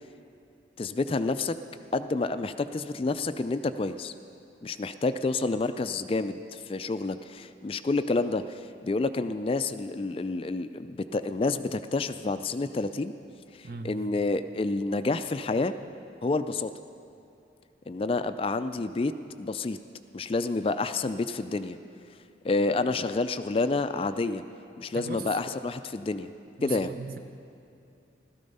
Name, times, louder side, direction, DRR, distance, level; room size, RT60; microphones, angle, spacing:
voice 1, 0.8-1.5 1.9-4.1 4.6-13.1 13.5-15.7 16.2-16.7 17.9-19.1 19.4-19.8 20.1-21.8 22.4-24.4 24.8-26.3 26.6-26.9, left 3 dB, 30° left, 11 dB, 0.3 m, -29 dB
voice 2, 13.6-14.1 24.9-25.4 26.6-27.2, right 3 dB, 50° right, 8 dB, 0.8 m, -38 dB
15.5 x 13.0 x 5.4 m, 2.7 s
head